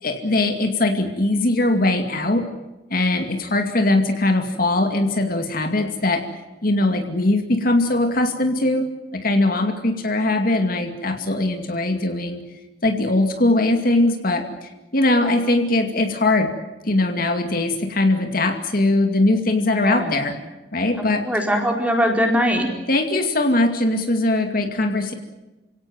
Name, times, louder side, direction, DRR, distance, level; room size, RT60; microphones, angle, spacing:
voice 1, 0.0-2.5 2.9-6.3 6.6-12.4 12.8-16.5 16.8-20.4 20.7-21.3 22.9-25.1, left 2 dB, 50° left, 5 dB, 2.4 m, -21 dB
voice 2, 19.7-20.1 21.2-22.7, equal, 10° right, 2 dB, 4.4 m, -21 dB
28.5 x 17.5 x 9.2 m, 1.1 s
head